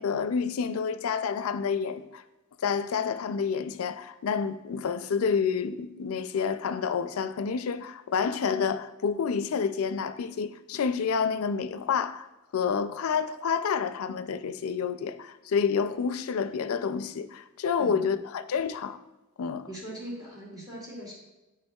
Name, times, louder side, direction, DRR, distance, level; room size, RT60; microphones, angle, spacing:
voice 1, 0.0-2.2 2.6-12.3 12.5-19.0 19.4-19.7, left 6 dB, 75° left, 0.4 m, -29 dB
voice 2, 19.7-21.1, right 1 dB, 20° right, 2.4 m, -40 dB
10.5 x 4.8 x 2.3 m
head